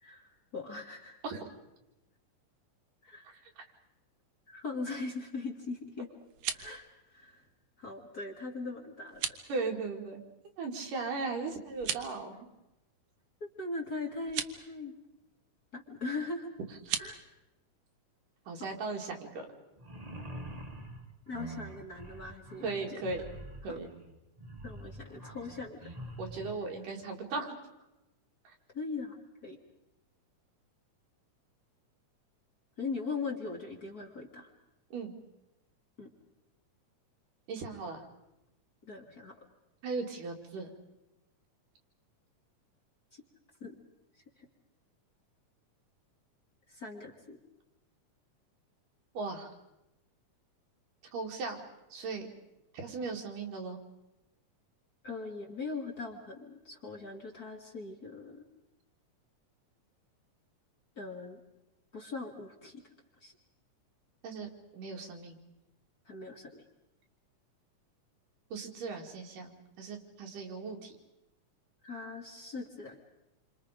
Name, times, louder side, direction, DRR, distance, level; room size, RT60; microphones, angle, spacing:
voice 1, 0.0-1.2 3.0-3.3 4.5-6.1 6.5-6.9 7.1-7.4 7.8-9.4 13.6-15.0 15.7-16.5 17.0-17.2 18.6-18.7 21.3-23.0 23.7-23.8 24.6-25.9 28.7-29.6 32.8-34.5 36.0-36.1 38.9-39.4 43.1-43.2 43.6-43.8 44.4-44.5 46.7-47.4 55.0-58.4 61.0-61.4 61.9-62.8 63.2-63.3 66.1-66.6 71.8-73.0, left 3 dB, 35° left, 1 dB, 2.0 m, -40 dB
voice 2, 3.3-3.7 9.5-10.2 10.6-12.5 16.9-17.0 18.5-19.5 22.6-23.2 23.6-23.9 26.2-27.6 28.4-28.5 34.9-35.2 37.5-38.1 39.8-40.7 49.1-49.5 51.1-51.6 51.9-52.3 52.7-53.8 64.2-65.4 68.5-70.9, right 4 dB, 90° right, 1 dB, 4.1 m, -37 dB
sound 1, 6.2-6.8 9.1-9.5 11.7-12.2 14.2-14.6 16.8-17.1, right 9 dB, 75° right, 2.4 m, -36 dB
sound 2, 19.8-26.6, right 1 dB, 15° right, 1.4 m, -45 dB
28.0 x 26.0 x 5.1 m, 0.92 s
omnidirectional pair, 3.6 m